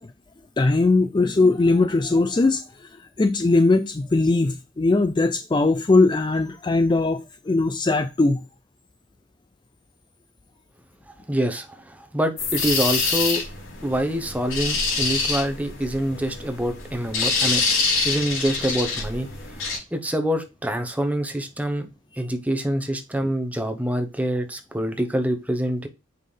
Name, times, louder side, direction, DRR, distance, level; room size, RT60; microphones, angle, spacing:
voice 1, 0.6-8.4, left 3 dB, 25° left, 0.3 m, -20 dB
voice 2, 11.1-13.4 13.8-17.6 18.0-21.9 22.2-25.9, equal, 5° right, 0.8 m, -26 dB
sound 1, 12.4-19.8, left 4 dB, 85° left, 3.2 m, -26 dB
7.5 x 5.4 x 3.3 m
head